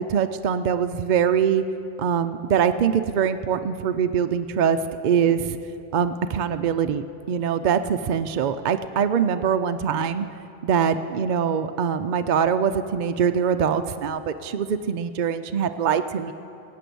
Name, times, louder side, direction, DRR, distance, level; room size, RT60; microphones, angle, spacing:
voice 1, 0.0-1.6 2.0-4.8 5.0-5.6 5.9-10.3 10.6-16.3, right 7 dB, 60° right, 9 dB, 0.5 m, -23 dB
17.5 x 8.5 x 6.9 m, 2.6 s
omnidirectional pair, 1.3 m